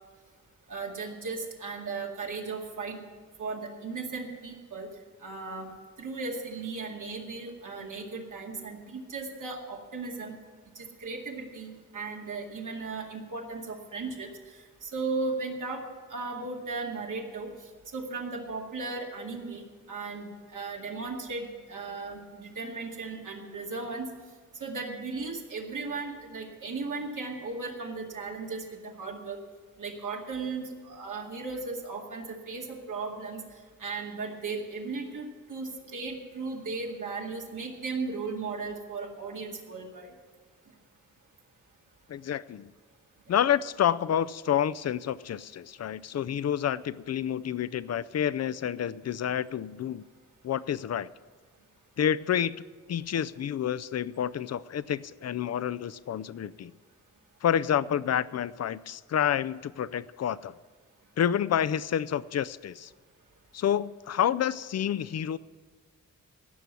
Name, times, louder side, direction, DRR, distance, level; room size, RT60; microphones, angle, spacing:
voice 1, 0.7-3.0 3.4-4.9 5.2-5.7 6.0-10.3 10.8-14.3 14.8-15.8 16.1-17.5 17.9-24.1 24.6-29.4 29.8-33.4 33.8-40.1, right 4 dB, 80° right, 0 dB, 2.2 m, -36 dB
voice 2, 42.1-42.7 43.3-50.0 50.4-51.1 52.0-56.7 57.4-60.5 61.2-62.9 63.5-65.4, left 9 dB, 55° left, 18 dB, 0.5 m, -29 dB
16.5 x 6.1 x 8.2 m, 1.5 s
wide cardioid pair, 85°, 31 cm